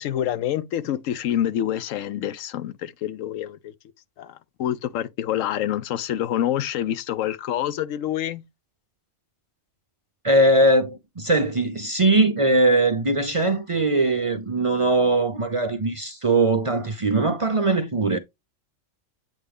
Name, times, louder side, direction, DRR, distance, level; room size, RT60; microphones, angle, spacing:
voice 1, 0.0-3.7 4.2-8.4, left 11 dB, 80° left, 1.0 m, -27 dB
voice 2, 10.2-18.2, right 2 dB, 45° right, 0.4 m, -20 dB
8.1 x 3.4 x 3.5 m
omnidirectional pair, 1.3 m